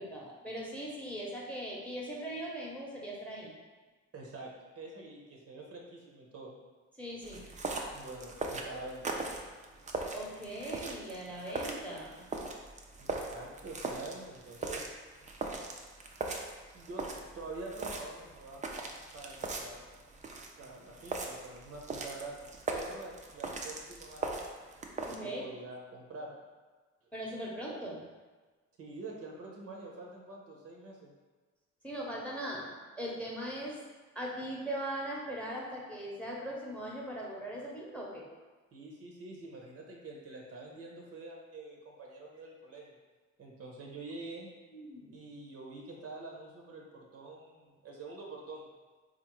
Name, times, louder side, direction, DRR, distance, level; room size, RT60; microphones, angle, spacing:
voice 1, 0.0-3.5 7.0-7.5 10.1-12.3 25.0-25.4 27.1-28.0 31.8-33.8 34.1-38.2 44.7-45.1, right 1 dB, 5° left, -4 dB, 0.8 m, -40 dB
voice 2, 4.1-4.5 4.8-6.5 7.9-9.2 13.0-14.9 16.7-18.7 19.1-19.8 20.6-22.3 22.7-24.4 25.1-26.3 27.0-27.1 28.8-31.1 38.7-43.0 43.4-44.5 45.1-48.7, right 2 dB, 50° right, -1 dB, 0.7 m, -46 dB
sound 1, 7.2-25.2, right 3 dB, 25° right, 0.4 m, -40 dB
3.8 x 2.5 x 3.0 m, 1.3 s
cardioid pair, 90°, 30 cm